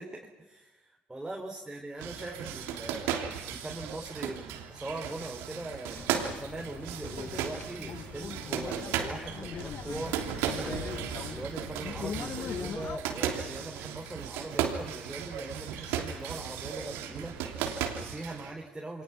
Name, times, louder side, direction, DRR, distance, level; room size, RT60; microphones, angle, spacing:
voice 1, 0.0-3.2 3.5-19.0, right 2 dB, 10° right, 0 dB, 4.0 m, -41 dB
sound 1, 2.0-18.5, right 9 dB, 70° right, 3.1 m, -36 dB
sound 2, 5.9-13.0, left 7 dB, 45° left, 1.2 m, -41 dB
28.5 x 24.5 x 6.0 m, 1.0 s
hypercardioid pair, 60°, 4 cm